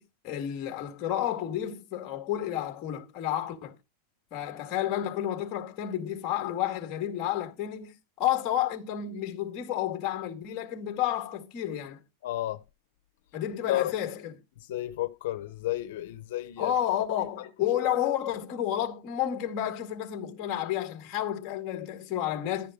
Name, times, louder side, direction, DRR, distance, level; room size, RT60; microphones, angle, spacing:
voice 1, 0.0-3.7 4.3-7.9 8.2-12.0 13.3-14.4 16.6-22.7, left 11 dB, 30° left, 2.1 m, -31 dB
voice 2, 12.2-12.6 13.7-13.9 14.7-16.7, left 14 dB, 60° left, 1.0 m, -31 dB
14.0 x 6.0 x 3.7 m
supercardioid pair, 165°, 0 cm